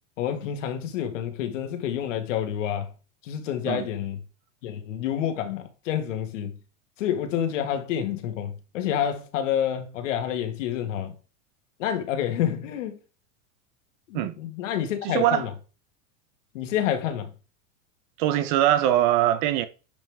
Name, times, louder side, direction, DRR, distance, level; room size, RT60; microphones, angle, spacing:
voice 1, 0.2-2.9 3.2-4.2 4.6-6.6 7.0-11.2 11.8-12.9 14.1-15.5 16.5-17.3, left 10 dB, 70° left, 1.9 m, -28 dB
voice 2, 15.0-15.4 18.2-19.7, right 12 dB, 40° right, 0.7 m, -22 dB
10.5 x 5.3 x 3.6 m
supercardioid pair, 165°, 39 cm